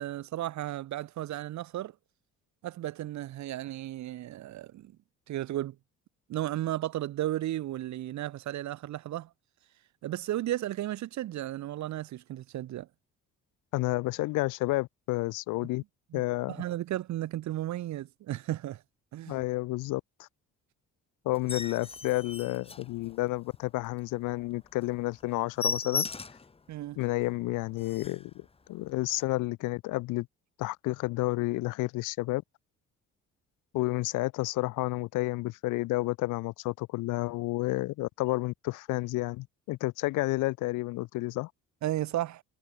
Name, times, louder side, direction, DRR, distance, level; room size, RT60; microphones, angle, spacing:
voice 1, 0.0-1.9 2.6-4.9 5.3-5.8 6.3-9.3 10.0-12.9 16.1-16.2 16.5-18.8 19.1-19.4 26.7-27.0 41.8-42.4, right 14 dB, 70° right, 0.8 m, -34 dB
voice 2, 13.7-15.8 16.1-16.5 19.3-20.3 21.3-26.0 27.0-30.3 30.6-32.4 33.7-41.5, left 20 dB, 85° left, 0.5 m, -30 dB
sound 1, 21.3-23.5 23.9-24.0 24.4-24.5 24.8-24.9 25.2-26.5 27.0-27.1 27.5-27.6 27.8-28.3 29.0-29.2, left 4 dB, 20° left, 0.8 m, -36 dB
cardioid pair, 90°, 30 cm